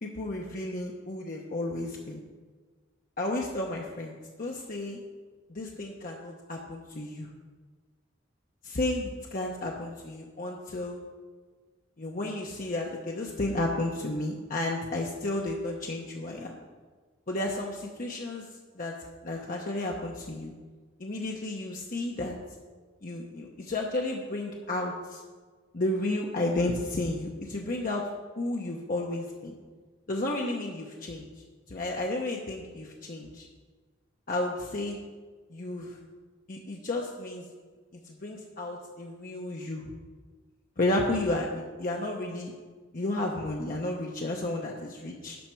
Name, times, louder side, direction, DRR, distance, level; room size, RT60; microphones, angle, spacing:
voice 1, 0.0-2.2 3.2-5.0 5.5-7.3 8.6-11.0 12.0-16.6 17.3-18.4 18.7-18.9 19.2-20.5 21.0-22.4 23.0-25.2 25.7-28.1 28.4-29.5 30.1-31.3 31.7-33.5 34.3-35.0 35.5-36.0 36.5-37.4 38.0-39.8 40.8-42.5 42.9-45.4, left 2 dB, 45° left, -1 dB, 0.8 m, -32 dB
11.5 x 5.7 x 4.5 m, 1.4 s
head